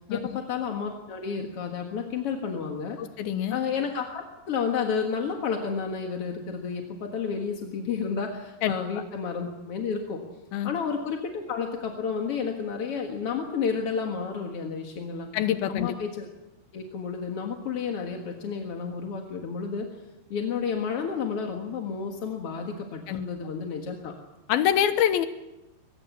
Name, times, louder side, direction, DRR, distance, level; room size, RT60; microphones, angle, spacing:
voice 1, 0.1-3.0 3.5-10.2 10.6-15.3 15.7-16.3 16.7-19.9 20.3-24.2, left 6 dB, 50° left, 3 dB, 1.9 m, -31 dB
voice 2, 3.0-3.6 8.6-8.7 10.5-10.7 15.3-15.9 23.1-23.2 24.5-25.3, left 10 dB, 75° left, 10 dB, 2.9 m, -25 dB
23.5 x 20.0 x 7.2 m, 0.96 s
omnidirectional pair, 4.6 m